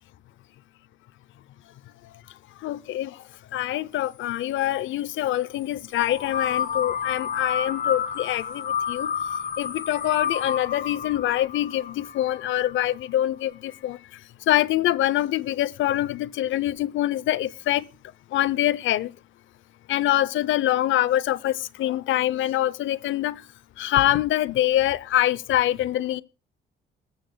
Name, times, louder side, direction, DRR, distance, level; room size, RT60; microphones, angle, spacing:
voice 1, 2.6-3.2 3.5-9.1 9.6-14.0 14.5-17.9 18.3-19.1 19.9-23.4 23.8-26.2, left 13 dB, 75° left, 0.6 m, -24 dB
sound 1, 5.9-12.7, left 7 dB, 45° left, 1.6 m, -30 dB
20.5 x 13.5 x 2.2 m
cardioid pair, 90°, 20 cm